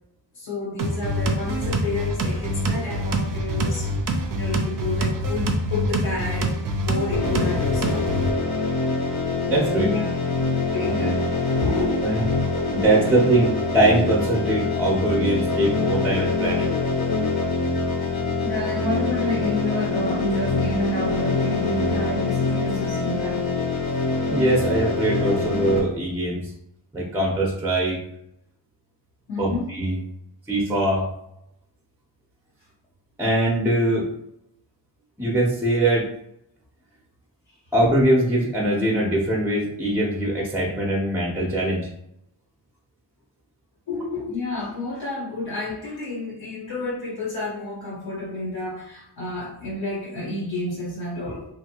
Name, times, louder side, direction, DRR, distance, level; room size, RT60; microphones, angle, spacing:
voice 1, 0.3-3.9 4.3-8.5 9.7-10.1 10.6-11.2 11.5-12.0 13.1-13.3 18.4-23.5 29.3-29.7 43.9-51.5, left 2 dB, 90° left, -6 dB, 1.5 m, -30 dB
sound 1, 0.8-8.3, right 1 dB, 50° right, 0.5 m, -25 dB
sound 2, 7.1-25.8, left 3 dB, 60° left, 0.9 m, -25 dB
voice 2, 9.5-9.9 10.8-11.1 12.0-12.2 12.7-13.5 13.7-16.8 24.3-26.5 26.9-28.0 29.4-30.0 30.5-31.1 33.2-34.1 35.2-36.1 37.7-41.9, right 1 dB, 5° right, -3 dB, 0.6 m, -22 dB
2.8 x 2.6 x 2.8 m, 0.78 s
wide cardioid pair, 105°, 44 cm